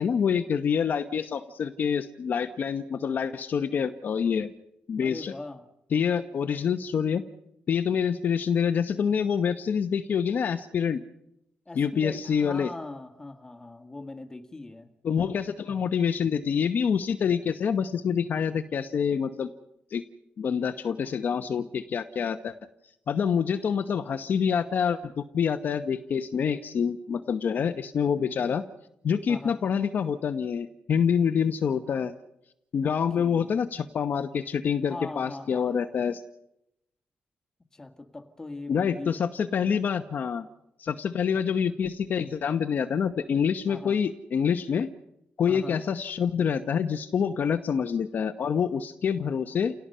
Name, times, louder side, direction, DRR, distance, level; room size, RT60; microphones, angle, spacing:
voice 1, 0.0-4.5 4.9-5.3 5.9-7.2 7.7-11.0 11.7-12.7 15.0-19.5 19.9-20.0 20.4-22.5 23.1-28.6 29.0-32.1 32.7-36.2 38.7-40.5 40.8-44.9 45.4-49.7, left 7 dB, 55° left, 8 dB, 1.0 m, -26 dB
voice 2, 5.0-5.7 11.7-14.9 29.3-29.6 32.8-33.6 34.9-35.8 37.7-39.2 43.7-44.0 45.5-45.8, left 2 dB, 15° left, 7 dB, 1.9 m, -41 dB
30.0 x 17.5 x 5.6 m, 0.82 s
cardioid pair, 135°, 4 cm